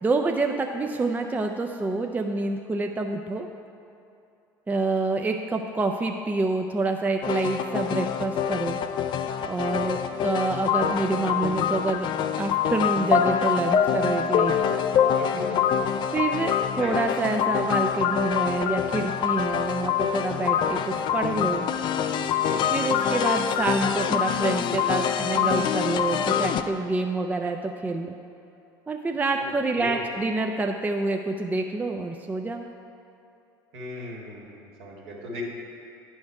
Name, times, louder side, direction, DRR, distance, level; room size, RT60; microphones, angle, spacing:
voice 1, 0.0-3.5 4.7-8.8 9.5-12.1 12.4-14.8 16.1-21.7 22.7-28.2 28.9-32.6, right 3 dB, 15° right, 3 dB, 0.5 m, -27 dB
sound 1, 7.2-26.6, left 8 dB, 45° left, 0.4 m, -25 dB
voice 2, 9.6-9.9 15.2-15.9 16.8-17.0 22.4-22.8 29.7-30.0 33.7-35.4, left 1 dB, 65° right, -3 dB, 1.8 m, -37 dB
10.5 x 4.4 x 4.7 m, 2.7 s
hypercardioid pair, 70°, 11 cm